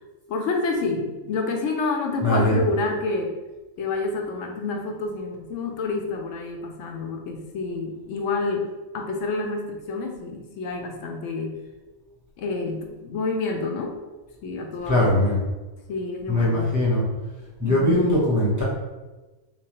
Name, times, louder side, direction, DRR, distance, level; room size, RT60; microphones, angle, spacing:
voice 1, 0.3-3.3 3.8-8.7 8.9-11.6 12.4-13.9 14.4-15.1 15.9-16.7 17.6-18.1, left 3 dB, 85° left, 3 dB, 0.9 m, -28 dB
voice 2, 2.2-2.6 14.9-15.4 16.3-17.1 17.6-18.6, left 1 dB, 20° right, -7 dB, 0.7 m, -20 dB
3.6 x 3.0 x 2.9 m, 1.2 s
omnidirectional pair, 1.3 m